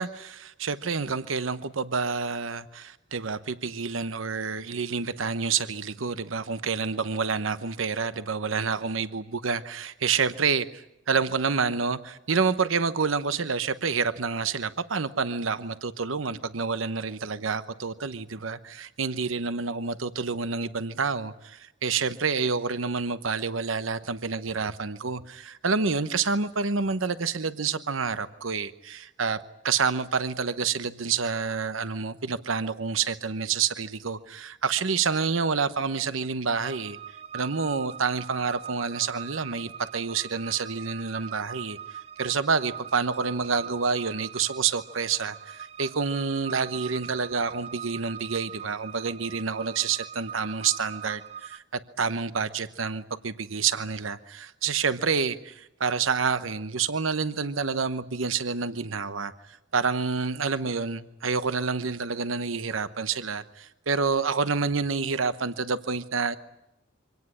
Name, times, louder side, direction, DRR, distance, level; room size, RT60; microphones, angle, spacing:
voice 1, 0.0-29.4 29.6-37.0 37.3-66.4, right 5 dB, 90° right, 1.0 m, -28 dB
sound 1, 36.5-51.6, right 8 dB, 30° right, 0.8 m, -42 dB
25.0 x 17.5 x 9.8 m
head